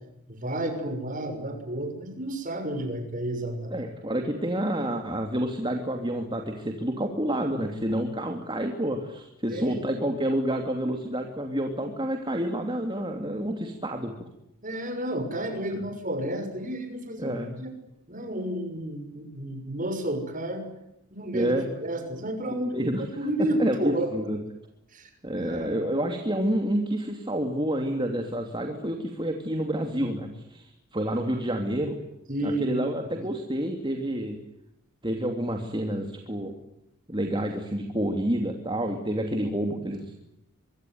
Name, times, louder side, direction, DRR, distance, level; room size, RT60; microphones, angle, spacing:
voice 1, 0.3-3.8 9.5-9.8 14.6-17.7 18.1-20.6 21.1-21.6 21.8-22.7 23.2-24.1 24.9-25.8 32.3-33.2, right 1 dB, 35° right, 7 dB, 6.4 m, -31 dB
voice 2, 3.7-14.3 15.7-15.8 17.2-17.6 21.3-21.7 22.5-23.0 23.6-24.4 25.2-32.0 32.4-34.4 35.0-36.6 37.1-40.1, right 1 dB, 20° right, 4 dB, 2.8 m, -29 dB
25.0 x 24.5 x 9.5 m, 0.84 s
head